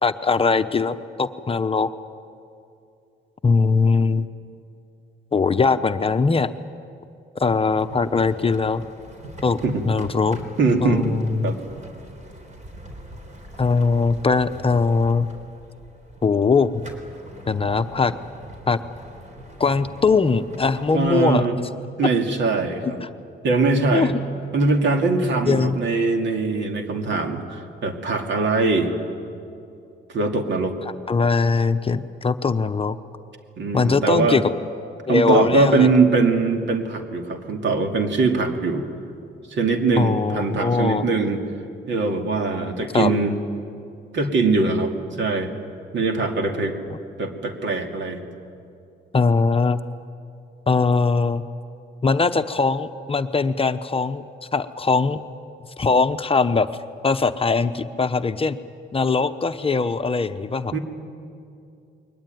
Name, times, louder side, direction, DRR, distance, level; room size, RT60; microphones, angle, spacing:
voice 1, 0.0-1.9 3.4-4.3 5.3-6.5 7.4-8.8 9.4-9.6 9.8-10.4 10.8-11.5 13.6-15.3 16.2-16.7 17.5-18.1 18.7-18.8 19.6-21.5 23.0-23.1 23.9-24.1 25.5-25.8 31.1-33.0 33.7-34.5 35.1-35.9 40.0-41.0 42.9-43.1 49.1-49.8 50.7-51.4 52.0-54.2 54.5-55.2 55.8-56.7 57.0-58.6 58.9-60.7, left 4 dB, 30° left, 9 dB, 0.8 m, -21 dB
sound 1, 7.5-21.4, right 1 dB, 35° right, 4.0 m, -42 dB
voice 2, 10.6-11.6 20.9-21.5 22.0-23.0 23.4-24.1 24.5-28.9 30.1-30.7 33.6-34.4 35.1-38.9 39.5-41.4 41.9-43.4 44.1-45.5 45.9-46.8 47.2-48.2 60.7-60.8, right 3 dB, 65° right, 4 dB, 2.5 m, -22 dB
22.0 x 19.5 x 9.4 m, 2.6 s
cardioid pair, 90°, 20 cm